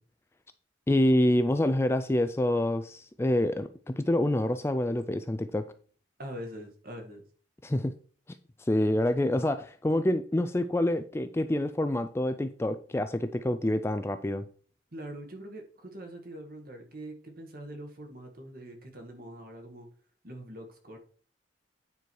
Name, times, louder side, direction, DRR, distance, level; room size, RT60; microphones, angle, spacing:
voice 1, 0.9-5.7 7.6-7.9 8.6-14.5, left 1 dB, 15° left, 0.3 m, -27 dB
voice 2, 6.2-7.2 14.9-19.9 20.2-21.0, right 1 dB, 45° right, 1.7 m, -43 dB
9.3 x 4.5 x 4.7 m
head